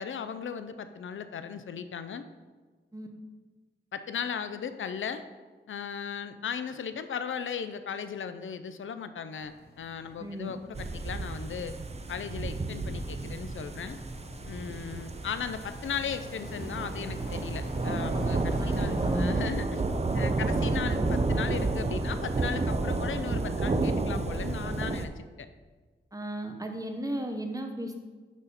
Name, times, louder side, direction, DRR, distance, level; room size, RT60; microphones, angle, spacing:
voice 1, 0.0-2.3 3.9-5.2 5.7-11.7 12.1-14.0 14.4-19.8 20.1-25.5, left 7 dB, 80° left, 10 dB, 0.4 m, -37 dB
sound 1, 9.4-19.3, left 1 dB, 55° left, 1.2 m, -47 dB
voice 2, 10.2-10.5 18.6-19.4 26.1-28.0, right 1 dB, 20° right, 4 dB, 0.9 m, -35 dB
sound 2, 10.7-25.1, right 3 dB, 35° right, 0.6 m, -31 dB
11.0 x 4.0 x 4.1 m, 1.4 s
wide cardioid pair, 95°, 20 cm